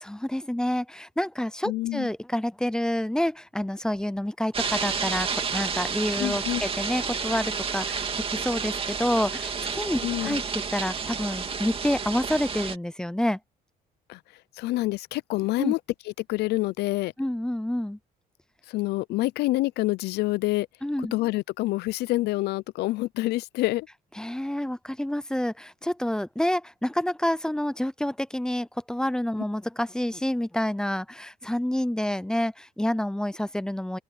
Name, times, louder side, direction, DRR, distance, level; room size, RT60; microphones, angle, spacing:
voice 1, 0.0-10.4 10.7-13.4 15.6-15.7 17.2-18.0 20.8-21.1 24.2-34.0, left 1 dB, 5° left, 0.6 m, -28 dB
voice 2, 1.7-2.1 6.2-6.6 10.0-10.4 14.1-14.2 14.6-15.8 16.3-17.1 18.7-20.7 21.1-23.9, left 18 dB, 80° left, 0.5 m, -27 dB
sound 1, 4.5-12.8, right 5 dB, 35° right, 2.7 m, -30 dB
open air
cardioid pair, 110°, 17 cm